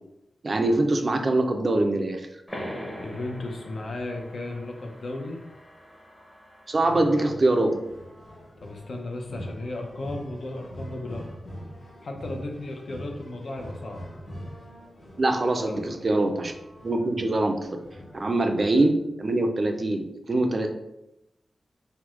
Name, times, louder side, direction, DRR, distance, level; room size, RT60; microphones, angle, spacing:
voice 1, 0.4-2.3 6.7-7.8 15.2-16.5 16.8-17.6 18.1-20.7, right 2 dB, 35° right, 5 dB, 0.3 m, -23 dB
sound 1, 2.5-7.7, equal, 10° left, 0.7 m, -42 dB
voice 2, 3.0-5.4 6.9-7.3 8.6-11.7 12.0-14.0 15.5-15.8 18.0-18.1, left 2 dB, 65° left, 2 dB, 0.5 m, -35 dB
sound 2, 7.5-18.9, equal, 45° left, 1.3 m, -43 dB
4.5 x 2.1 x 2.4 m, 0.89 s
wide cardioid pair, 145°, 0 cm